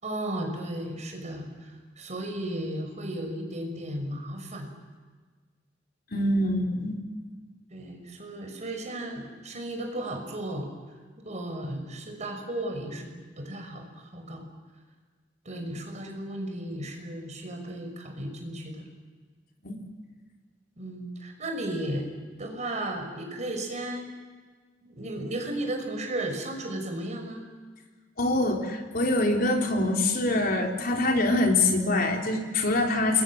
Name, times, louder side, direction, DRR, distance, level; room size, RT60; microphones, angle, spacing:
voice 1, 0.0-4.7 7.7-10.7 11.2-13.1 13.4-14.4 15.4-18.9 20.8-22.1 22.4-24.1 24.8-27.4, right 1 dB, 40° right, 4 dB, 6.1 m, -34 dB
voice 2, 6.1-7.0 19.6-19.8 28.2-33.2, left 2 dB, 55° left, 2 dB, 3.9 m, -24 dB
28.5 x 22.5 x 7.7 m, 1.5 s
head